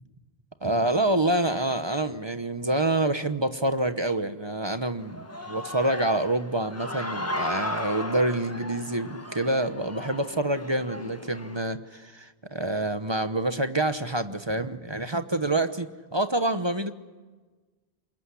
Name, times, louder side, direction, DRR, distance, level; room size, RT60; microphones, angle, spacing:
voice 1, 0.6-16.9, right 2 dB, 25° right, 10 dB, 1.0 m, -27 dB
Human voice / Cheering, 5.0-11.6, left 1 dB, 15° left, 1.2 m, -36 dB
27.0 x 22.0 x 9.9 m, 1.3 s
omnidirectional pair, 1.1 m